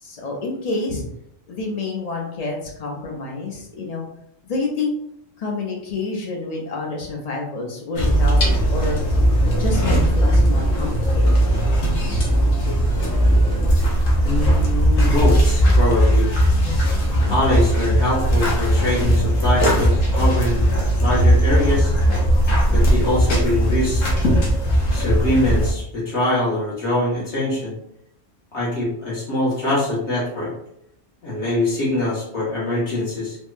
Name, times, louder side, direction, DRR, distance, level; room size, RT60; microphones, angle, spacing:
voice 1, 0.0-1.0 1.5-4.1 4.4-4.9 5.4-8.4 8.7-9.0 9.6-11.4 16.5-17.4 19.2-19.3, left 3 dB, 45° left, -1 dB, 0.5 m, -28 dB
sound 1, 8.0-25.7, equal, 80° left, 1.1 m, -18 dB
voice 2, 14.2-16.3 17.3-20.7 21.0-21.9 22.7-24.1 24.9-27.8 28.5-30.5 31.2-33.4, left 1 dB, 65° left, -7 dB, 1.7 m, -23 dB
3.5 x 2.1 x 2.5 m, 0.75 s
omnidirectional pair, 1.3 m